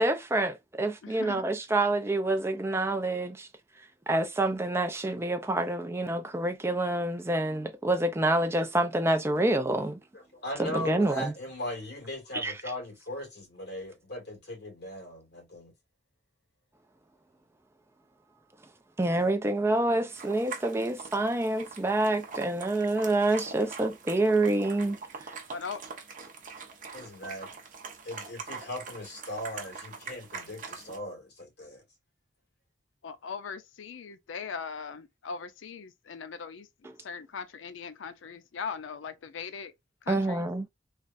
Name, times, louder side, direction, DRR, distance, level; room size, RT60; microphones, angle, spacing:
voice 1, 0.0-3.5 4.1-10.0 10.6-11.3 12.3-12.5 19.0-25.4 36.8-36.9 40.1-40.7, right 2 dB, 15° right, 0.4 m, -27 dB
voice 2, 1.0-1.4 25.5-25.8 33.0-36.7 37.0-39.7 40.1-40.5, left 5 dB, 85° left, 0.5 m, -39 dB
voice 3, 10.1-15.7 26.9-27.5 28.0-31.8, left 1 dB, 60° left, 1.8 m, -39 dB
sound 1, 20.1-31.0, right 5 dB, 45° right, 0.8 m, -43 dB
3.2 x 2.4 x 2.5 m
head